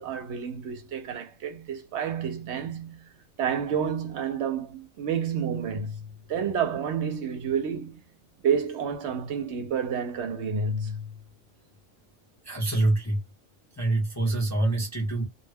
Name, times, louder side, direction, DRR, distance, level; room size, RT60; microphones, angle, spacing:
voice 1, 0.0-3.1 3.4-6.0 6.3-8.0 8.4-11.1, right 6 dB, 70° right, 0.8 m, -29 dB
voice 2, 12.4-13.2 13.8-15.3, right 2 dB, 20° left, 0.5 m, -25 dB
2.3 x 2.1 x 3.3 m
omnidirectional pair, 1.3 m